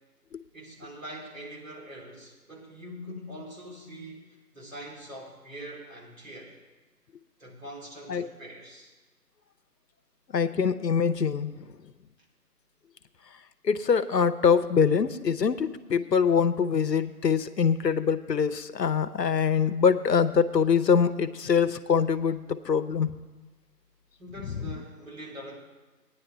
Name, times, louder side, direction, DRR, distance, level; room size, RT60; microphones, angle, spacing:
voice 1, 0.5-6.6 7.4-8.9 24.2-25.6, equal, 55° right, -3 dB, 3.4 m, -43 dB
voice 2, 10.3-11.7 13.6-23.1, left 6 dB, 75° left, 10 dB, 0.8 m, -24 dB
17.0 x 9.8 x 3.4 m, 1.2 s
figure-of-eight pair, 175°, 50 cm